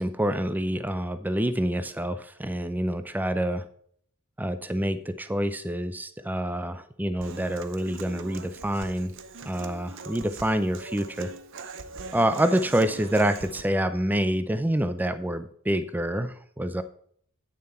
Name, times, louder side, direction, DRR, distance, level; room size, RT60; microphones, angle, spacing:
voice 1, 0.0-3.6 4.4-9.1 9.4-11.3 12.1-16.8, right 1 dB, 10° right, 12 dB, 0.5 m, -27 dB
Human voice / Acoustic guitar, 7.2-13.6, right 4 dB, 60° right, 0.7 m, -42 dB
8.9 x 6.9 x 4.3 m, 0.62 s
head